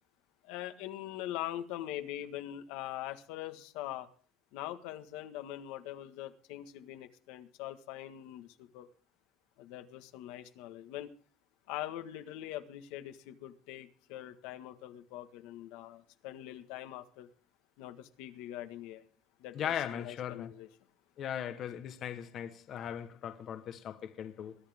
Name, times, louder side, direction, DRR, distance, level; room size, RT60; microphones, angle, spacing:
voice 1, 0.4-4.1 4.5-8.9 9.6-11.1 11.7-17.3 17.8-19.0 19.4-20.7, left 13 dB, 80° left, 1.6 m, -43 dB
voice 2, 19.5-20.5 21.2-24.6, left 9 dB, 40° left, 1.1 m, -38 dB
22.0 x 11.5 x 3.6 m
cardioid pair, 170°, 0 cm